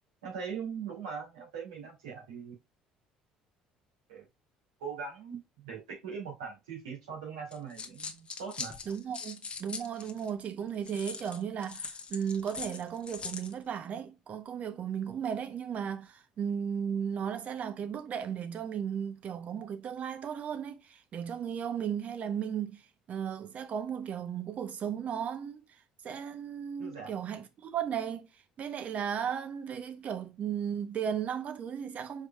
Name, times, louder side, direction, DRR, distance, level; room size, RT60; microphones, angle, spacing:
voice 1, 0.2-2.5 4.1-4.2 4.8-8.8 26.8-27.1, right 6 dB, 80° right, 2.4 m, -41 dB
sound 1, 7.5-10.3 10.8-13.5, left 5 dB, 35° left, 0.8 m, -41 dB
voice 2, 8.9-28.3 28.6-32.3, right 8 dB, 50° right, 0.9 m, -35 dB
4.8 x 4.7 x 2.4 m
hypercardioid pair, 60°, 3 cm